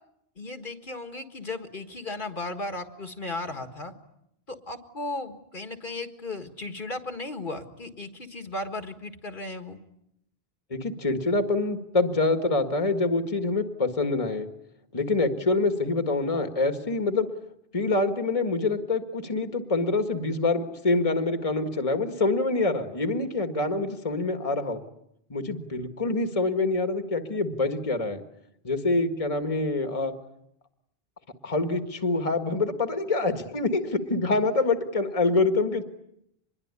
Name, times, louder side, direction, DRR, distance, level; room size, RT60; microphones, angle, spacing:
voice 1, 0.4-3.9 4.5-9.8, left 2 dB, 55° left, 7 dB, 1.9 m, -36 dB
voice 2, 10.7-14.5 14.9-17.3 17.7-24.8 25.3-28.2 28.6-30.1 31.4-35.8, left 3 dB, 35° left, 7 dB, 1.8 m, -26 dB
25.5 x 21.5 x 9.7 m, 0.79 s
omnidirectional pair, 1.0 m